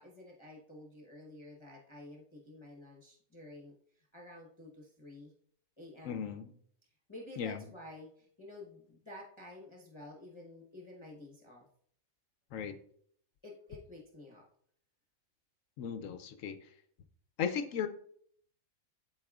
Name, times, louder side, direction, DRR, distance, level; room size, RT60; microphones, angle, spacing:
voice 1, 0.0-5.3 5.8-6.3 7.1-11.7 13.4-14.4, left 1 dB, 20° left, -3 dB, 0.9 m, -51 dB
voice 2, 6.0-6.5 7.4-7.6 12.5-12.7 15.8-16.6 17.4-17.9, left 7 dB, 65° left, 9 dB, 0.9 m, -36 dB
12.0 x 4.2 x 2.4 m, 0.62 s
omnidirectional pair, 1.6 m